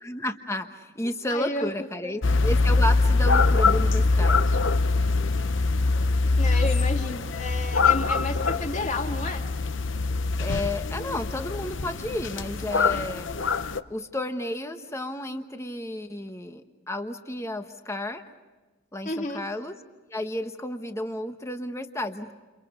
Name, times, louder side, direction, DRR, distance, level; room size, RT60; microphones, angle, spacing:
voice 1, 0.0-4.4 10.4-13.3 13.9-18.2 18.9-19.8 20.1-22.3, left 1 dB, 15° left, 7 dB, 1.2 m, -32 dB
voice 2, 1.3-1.7 2.0-2.1 6.4-9.4 19.0-19.4, left 2 dB, 35° left, 3 dB, 2.2 m, -31 dB
sound 1, 2.2-13.8, left 3 dB, 65° left, 0.8 m, -23 dB
29.5 x 29.0 x 5.2 m, 1.3 s
head